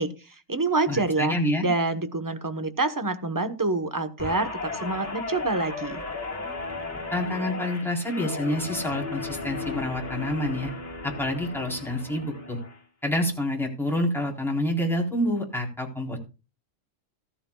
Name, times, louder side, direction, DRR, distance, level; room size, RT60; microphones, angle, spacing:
voice 1, 0.0-1.4 1.6-6.0, right 3 dB, 15° right, 10 dB, 1.0 m, -27 dB
voice 2, 0.9-1.7 7.1-10.7 11.0-12.6 13.0-16.2, left 1 dB, ahead, -1 dB, 3.8 m, -27 dB
Guitar, 4.2-12.8 13.2-13.5, left 3 dB, 35° left, 3.6 m, -35 dB
15.0 x 14.0 x 2.3 m, 0.31 s
omnidirectional pair, 1.4 m